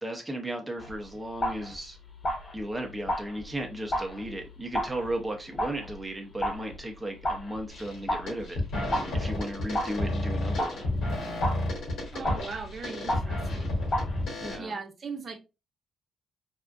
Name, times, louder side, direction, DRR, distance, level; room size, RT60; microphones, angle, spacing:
voice 1, 0.0-2.0 2.5-8.6 9.1-10.8 14.4-14.7, right 1 dB, 15° right, 0.6 m, -35 dB
sound 1, 0.8-14.6, equal, 35° left, 0.9 m, -35 dB
sound 2, 7.7-8.0 8.3-14.6, left 1 dB, 85° left, 1.6 m, -31 dB
voice 2, 12.1-13.7 14.6-15.4, right 4 dB, 50° right, 0.7 m, -39 dB
3.5 x 2.4 x 2.3 m
cardioid pair, 90°, 0 cm